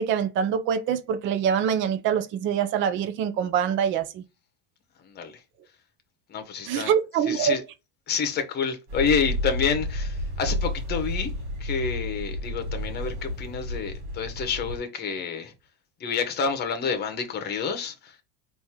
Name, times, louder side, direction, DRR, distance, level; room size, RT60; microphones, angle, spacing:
voice 1, 0.0-4.2 6.7-7.6, right 8 dB, 35° right, 0.5 m, -25 dB
voice 2, 5.0-5.4 6.3-6.9 7.2-7.6 8.1-11.3 11.6-15.5 16.0-18.2, left 6 dB, 25° left, 0.9 m, -28 dB
sound 1, 8.9-14.8, left 1 dB, 55° right, 2.9 m, -31 dB
4.4 x 2.7 x 3.5 m
cardioid pair, 155°, 36 cm